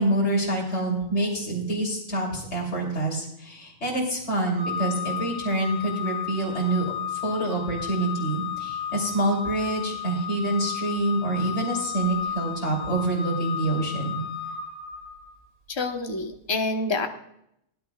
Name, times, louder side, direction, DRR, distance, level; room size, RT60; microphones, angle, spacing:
voice 1, 0.0-6.9 7.1-14.2, right 2 dB, 55° left, -4 dB, 3.6 m, -26 dB
Organ, 4.5-15.3, left 9 dB, 50° right, 2.2 m, -34 dB
voice 2, 15.7-17.1, left 3 dB, 20° left, 4 dB, 1.0 m, -27 dB
19.5 x 10.5 x 2.4 m, 0.76 s
omnidirectional pair, 1.4 m